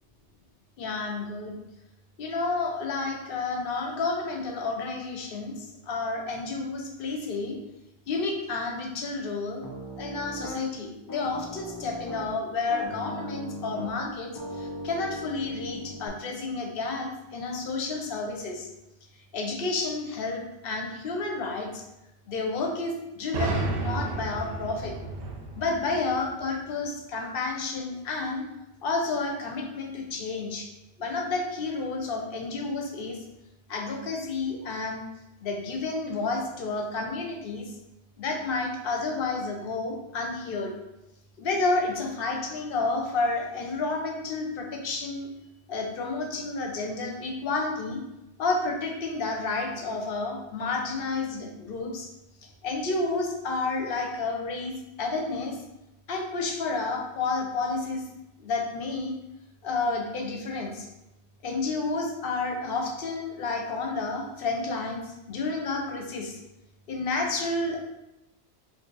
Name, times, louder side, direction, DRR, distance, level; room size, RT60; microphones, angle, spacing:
voice 1, 0.8-1.6 2.2-7.6 8.1-9.6 10.0-18.7 19.3-21.8 22.3-24.9 25.5-28.4 28.8-30.7 31.0-33.2 33.7-35.0 35.4-37.7 38.2-40.7 41.4-45.3 45.7-48.0 48.4-52.1 52.6-55.6 56.1-58.0 58.4-59.1 59.6-60.9 61.4-66.4 66.9-67.8, left 3 dB, 60° left, 2 dB, 0.7 m, -30 dB
Piano, 9.6-10.6 11.1-12.3 12.7-16.1, equal, 35° left, 0.3 m, -39 dB
sound 1, 23.3-27.0, right 3 dB, 60° right, 0.6 m, -32 dB
2.6 x 2.4 x 3.8 m, 0.91 s
omnidirectional pair, 1.1 m